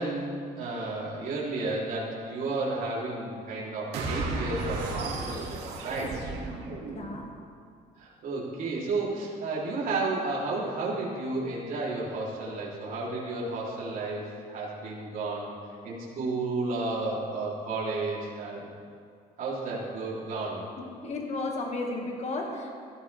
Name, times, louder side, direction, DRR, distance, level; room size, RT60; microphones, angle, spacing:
voice 1, 0.0-6.1 8.0-15.5 15.8-18.7 19.4-20.6, right 3 dB, 55° right, -7 dB, 3.6 m, -32 dB
sound 1, 3.9-7.3, right 3 dB, 80° right, 2.6 m, -34 dB
voice 2, 6.9-7.3 20.8-22.7, left 2 dB, 40° left, 1 dB, 2.1 m, -33 dB
16.5 x 14.0 x 3.5 m, 2.2 s
cardioid pair, 110°, 17 cm